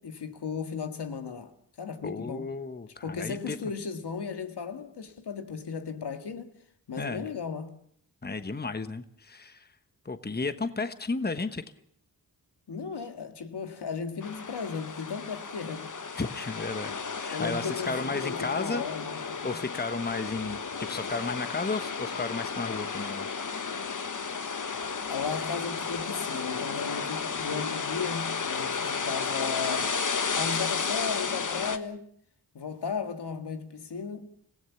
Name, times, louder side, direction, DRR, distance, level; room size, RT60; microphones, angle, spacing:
voice 1, 0.0-2.5 3.0-6.5 6.9-7.8 12.7-16.0 17.3-19.6 25.1-29.9 30.3-32.1 32.5-34.3, left 5 dB, 80° left, 1.9 m, -36 dB
voice 2, 2.0-3.6 7.0-7.3 8.2-9.7 10.0-11.6 16.1-18.8 19.4-23.3, left 3 dB, 25° left, 1.2 m, -33 dB
sound 1, 14.2-31.8, left 5 dB, 50° left, 1.3 m, -33 dB
27.0 x 16.5 x 7.1 m
cardioid pair, 65°, 40 cm